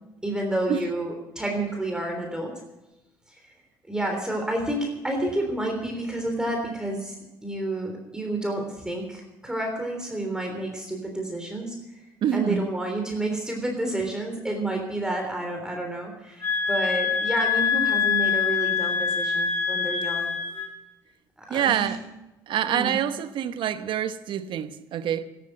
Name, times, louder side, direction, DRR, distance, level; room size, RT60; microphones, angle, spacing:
voice 1, 0.2-2.5 3.3-3.5 3.9-7.2 7.4-11.7 12.3-20.4 21.4-21.9 22.7-23.0, right 1 dB, 5° right, 3.5 m, -30 dB
voice 2, 12.2-12.7 21.5-22.0 22.5-25.2, right 9 dB, 60° right, 1.1 m, -26 dB
sound 1, 16.4-20.7, left 6 dB, 20° left, 5.8 m, -25 dB
13.5 x 11.5 x 7.7 m
supercardioid pair, 75°, 9 cm